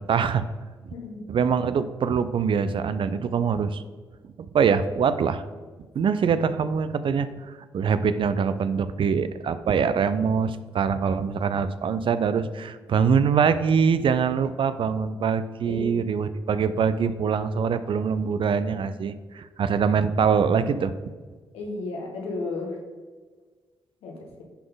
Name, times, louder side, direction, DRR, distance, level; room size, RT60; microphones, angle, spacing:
voice 1, 0.1-0.4 1.3-3.8 4.5-5.4 5.9-20.9, right 6 dB, 60° right, 12 dB, 0.5 m, -24 dB
voice 2, 0.9-1.2 15.6-16.0 21.5-22.8 24.0-24.4, left 3 dB, 85° left, 1 dB, 1.2 m, -33 dB
10.0 x 3.9 x 4.0 m, 1.4 s
supercardioid pair, 45°, 10 cm